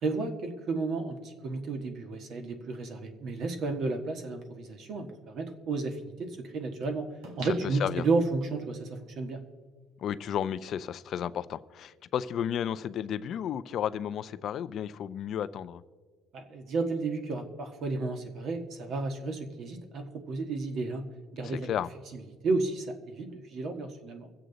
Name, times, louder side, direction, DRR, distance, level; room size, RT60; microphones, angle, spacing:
voice 1, 0.0-7.1 7.4-9.4 16.3-21.0 21.3-21.7 22.1-24.3, right 3 dB, 55° right, 6 dB, 1.5 m, -32 dB
sound 1, 7.2-8.6 9.1-9.2, right 2 dB, 85° right, 2.2 m, -46 dB
voice 2, 10.0-15.8 21.4-21.9, left 9 dB, 50° left, 14 dB, 0.5 m, -33 dB
23.5 x 7.9 x 3.9 m, 1.5 s
cardioid pair, 130°, 0 cm